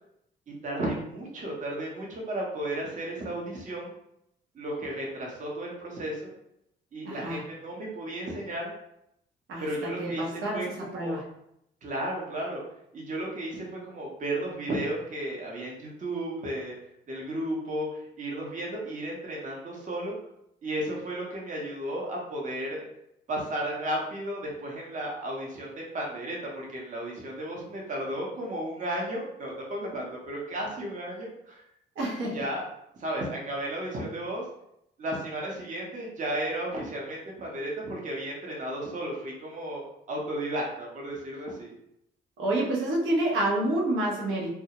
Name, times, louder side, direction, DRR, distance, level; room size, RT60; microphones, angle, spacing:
voice 1, 0.6-3.9 4.5-6.3 6.9-8.7 9.6-11.2 11.8-12.6 12.9-16.8 17.1-20.2 20.6-22.8 23.3-31.6 32.3-32.6 33.0-34.4 35.0-41.7, right 1 dB, 40° right, -2 dB, 0.7 m, -34 dB
voice 2, 7.0-7.4 9.5-11.2 32.0-32.4 42.4-44.5, right 1 dB, 80° right, -3 dB, 0.8 m, -28 dB
2.3 x 2.0 x 2.8 m, 0.78 s
cardioid pair, 90°, 20 cm